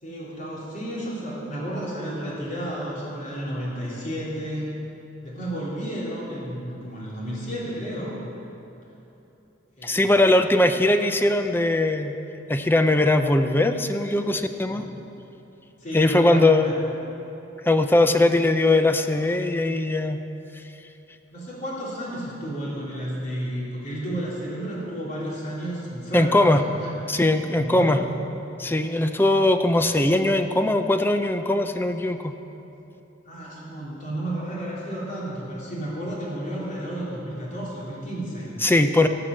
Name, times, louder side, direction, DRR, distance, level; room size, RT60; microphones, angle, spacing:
voice 1, 0.0-4.7 5.2-8.1 9.8-10.1 14.7-14.9 15.8-16.7 21.3-26.9 27.6-28.2 33.2-38.5, right 1 dB, 40° left, -6 dB, 3.4 m, -32 dB
voice 2, 9.8-12.2 12.5-14.8 15.9-16.7 17.7-20.2 26.1-26.6 27.1-28.0 28.6-32.4 38.6-39.1, left 2 dB, 10° left, 8 dB, 0.5 m, -20 dB
17.5 x 5.9 x 7.7 m, 3.0 s
head